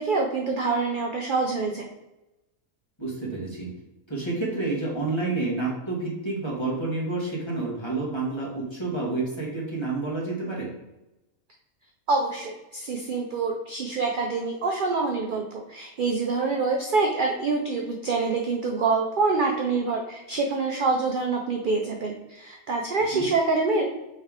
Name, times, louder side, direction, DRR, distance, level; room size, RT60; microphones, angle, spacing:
voice 1, 0.0-1.9 12.1-23.8, right 3 dB, 65° right, 1 dB, 0.5 m, -26 dB
voice 2, 3.0-3.7 4.1-10.7 23.1-23.2, right 3 dB, 20° left, -5 dB, 1.2 m, -29 dB
4.6 x 3.2 x 3.5 m, 0.97 s
omnidirectional pair, 1.5 m